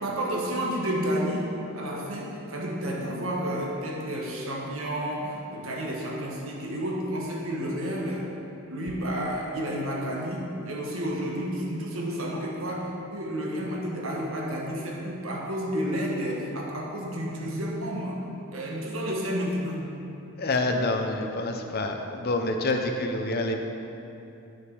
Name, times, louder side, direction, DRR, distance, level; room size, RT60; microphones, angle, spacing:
voice 1, 0.0-8.3 8.7-18.2 18.5-19.8, equal, 70° right, -2 dB, 1.4 m, -31 dB
voice 2, 20.4-23.6, left 2 dB, 45° left, 4 dB, 0.8 m, -27 dB
11.5 x 6.5 x 4.7 m, 2.8 s
head